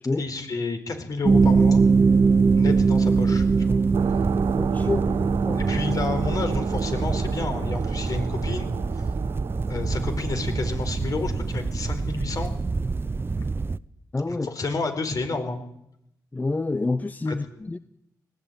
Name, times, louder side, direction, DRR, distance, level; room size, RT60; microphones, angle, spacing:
voice 1, 0.2-1.8 2.6-4.2 4.8-4.9 5.2-5.3 5.5-8.7 8.9-9.1 9.7-12.5 14.3-15.6 17.3-17.4, left 3 dB, 50° left, 4.4 m, -30 dB
sound 1, 1.2-13.8, right 4 dB, 30° right, 0.8 m, -23 dB
sound 2, 3.9-10.8, right 8 dB, 70° right, 0.9 m, -34 dB
voice 2, 4.6-5.0 5.4-5.6 14.1-14.5 16.3-17.8, left 3 dB, 20° left, 0.8 m, -27 dB
19.0 x 16.0 x 9.3 m
supercardioid pair, 60°, 8 cm